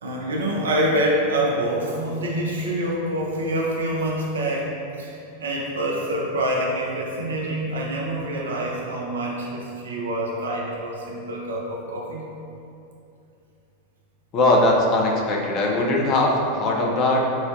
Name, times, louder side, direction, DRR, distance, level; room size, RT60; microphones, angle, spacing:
voice 1, 0.0-4.7 5.0-12.3, right 1 dB, 65° right, -2 dB, 0.5 m, -26 dB
voice 2, 14.3-17.3, left 2 dB, 35° left, -1 dB, 0.4 m, -20 dB
3.8 x 2.1 x 2.6 m, 2.6 s
figure-of-eight pair, 90°, 0 cm